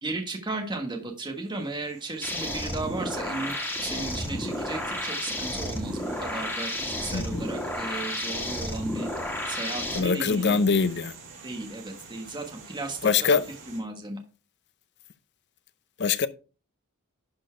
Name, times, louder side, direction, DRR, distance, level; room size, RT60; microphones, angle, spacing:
voice 1, 0.0-3.5 3.8-9.1 9.5-10.6 11.4-13.4 13.7-14.2, right 2 dB, 20° right, 1.4 m, -35 dB
sound 1, 1.4-13.8, right 4 dB, 55° right, 3.5 m, -48 dB
sound 2, 2.2-10.0, left 1 dB, 10° left, 2.2 m, -32 dB
voice 2, 7.1-7.5 9.9-11.1 13.0-13.4 16.0-16.3, left 5 dB, 50° left, 0.7 m, -23 dB
11.5 x 4.4 x 4.5 m
head